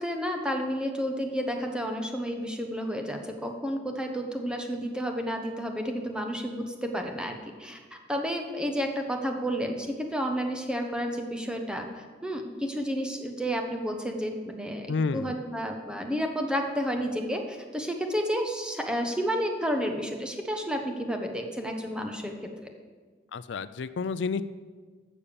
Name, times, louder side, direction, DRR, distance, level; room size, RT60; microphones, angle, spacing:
voice 1, 0.0-14.9 15.1-22.3, equal, 5° right, 3 dB, 1.1 m, -31 dB
voice 2, 14.9-15.3 23.3-24.4, left 4 dB, 75° left, 14 dB, 0.4 m, -30 dB
12.0 x 7.2 x 6.9 m, 1.5 s
head